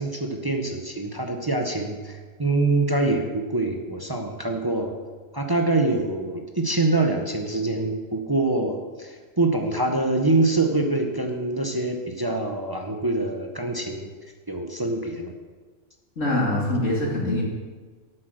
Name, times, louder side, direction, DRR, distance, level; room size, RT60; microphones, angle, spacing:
voice 1, 0.0-4.9 5.3-14.1 14.5-15.3, right 2 dB, 20° right, 3 dB, 0.7 m, -25 dB
voice 2, 16.2-17.4, left 1 dB, 90° left, -3 dB, 2.8 m, -23 dB
8.7 x 8.5 x 6.4 m, 1.4 s
omnidirectional pair, 1.3 m